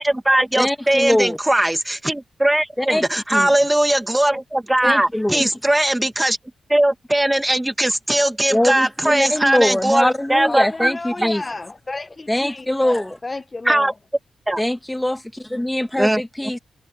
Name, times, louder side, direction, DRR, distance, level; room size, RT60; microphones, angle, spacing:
voice 1, 0.0-6.4 6.7-10.9 13.7-13.9 14.5-14.6 16.0-16.2, right 1 dB, 10° right, 2.2 m, -19 dB
voice 2, 0.6-1.4 2.8-3.0 3.3-3.5 4.8-5.5 8.5-11.4 12.3-13.2 14.6-16.6, left 1 dB, 10° left, 2.0 m, -22 dB
voice 3, 10.5-13.9, left 3 dB, 30° left, 1.1 m, -32 dB
cardioid pair, 65°, 0 cm